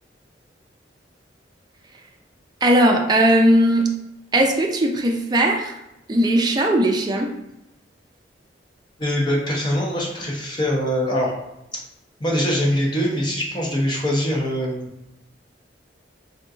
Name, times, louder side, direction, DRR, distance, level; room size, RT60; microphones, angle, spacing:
voice 1, 2.6-3.9 4.3-5.8 6.1-7.3, right 1 dB, 25° right, 1 dB, 0.4 m, -18 dB
voice 2, 9.0-11.3 12.2-14.9, equal, 25° left, -3 dB, 0.7 m, -23 dB
3.6 x 2.6 x 2.4 m, 0.85 s
head